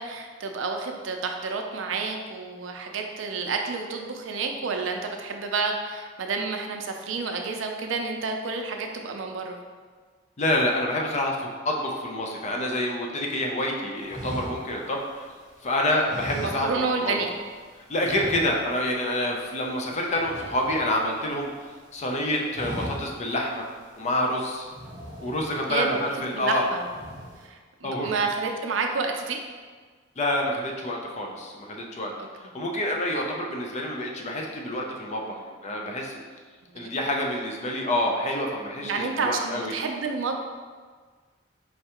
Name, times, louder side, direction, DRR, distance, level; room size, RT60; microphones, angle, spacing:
voice 1, 0.0-9.6 16.3-17.3 25.7-26.0 26.3-26.8 27.4-29.4 32.2-32.3 36.8-36.9 38.8-40.4, right 4 dB, 70° right, 3 dB, 0.5 m, -29 dB
voice 2, 10.4-15.3 15.6-17.1 17.9-21.5 21.9-23.6 24.0-24.7 25.2-26.6 27.8-28.1 30.2-32.1 32.4-36.2 36.7-39.8, left 1 dB, 35° left, 0 dB, 0.5 m, -27 dB
sound 1, 14.0-15.5 16.0-17.2 17.4-17.6 18.0-18.9 19.2-19.4 19.7-21.4 21.8-22.1 22.4-23.3 23.8-23.9 24.6-25.8 26.2-26.6 26.8-27.4, equal, 20° right, 0.9 m, -38 dB
4.6 x 3.3 x 2.9 m, 1.5 s
head